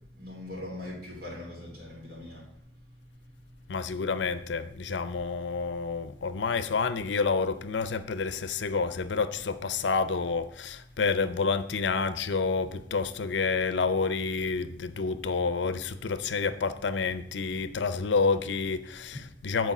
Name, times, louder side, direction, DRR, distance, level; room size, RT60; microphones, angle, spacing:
voice 1, 0.2-2.4, left 1 dB, 55° right, 3.4 m, -40 dB
voice 2, 3.7-19.7, left 4 dB, 80° left, 0.5 m, -29 dB
8.2 x 4.6 x 6.0 m
head